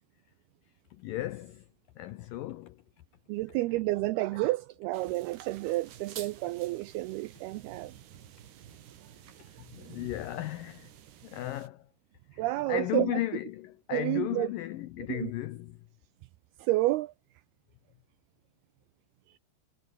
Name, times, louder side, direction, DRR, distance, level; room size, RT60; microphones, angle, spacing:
voice 1, 0.9-1.7 2.0-2.8 9.4-10.9 11.2-11.9 12.3-12.4 12.7-15.8, left 15 dB, 85° left, 2.0 m, -35 dB
voice 2, 3.3-8.0 12.4-13.2 13.9-14.5 15.1-15.3 16.6-17.1 19.3-19.4, right 18 dB, 85° right, 2.3 m, -30 dB
sound 1, 4.9-11.7, right 10 dB, 70° right, 4.3 m, -50 dB
omnidirectional pair, 5.1 m